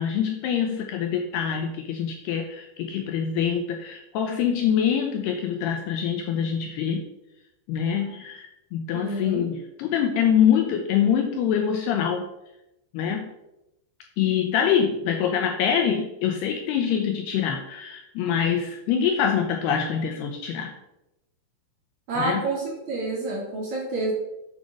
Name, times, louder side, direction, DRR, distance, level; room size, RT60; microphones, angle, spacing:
voice 1, 0.0-7.0 7.7-12.3 12.9-13.3 14.2-20.7 22.2-22.4, left 8 dB, 75° left, 3 dB, 2.5 m, -25 dB
voice 2, 8.9-9.5 22.1-24.1, right 2 dB, 45° right, -3 dB, 3.1 m, -29 dB
8.2 x 6.9 x 6.4 m, 0.90 s
omnidirectional pair, 5.4 m